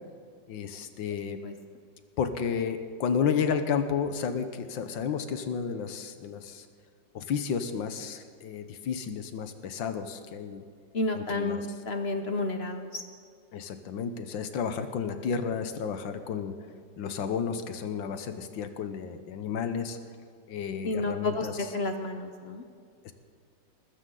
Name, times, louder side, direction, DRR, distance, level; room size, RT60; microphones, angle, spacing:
voice 1, 0.5-1.4 2.2-6.7 7.1-10.6 11.1-11.6 13.5-16.5 17.0-20.0 20.5-21.6 23.0-23.1, left 6 dB, 85° left, 9 dB, 1.7 m, -32 dB
voice 2, 10.9-13.0 20.8-22.6, left 2 dB, 50° left, 6 dB, 0.8 m, -31 dB
20.0 x 14.5 x 3.9 m, 2.2 s
omnidirectional pair, 2.0 m